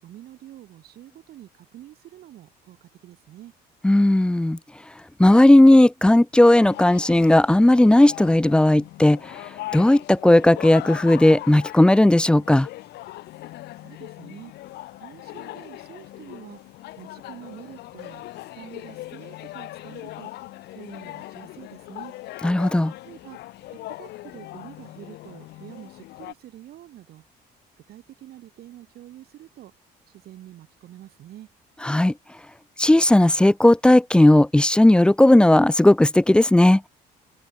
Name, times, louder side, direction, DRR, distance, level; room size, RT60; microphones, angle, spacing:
voice 1, 0.0-3.5 13.8-14.5 15.0-16.6 17.0-18.3 18.6-20.3 20.7-22.1 23.0-23.4 23.9-27.3 27.9-29.7 30.1-31.5, right 13 dB, 70° right, 7.3 m, -46 dB
voice 2, 3.8-4.6 5.2-9.2 9.7-12.7 22.4-22.9 31.8-32.1 32.8-36.8, left 1 dB, 5° left, 0.6 m, -15 dB
sound 1, 6.5-26.3, left 17 dB, 80° left, 2.6 m, -40 dB
open air
cardioid pair, 110°, 17 cm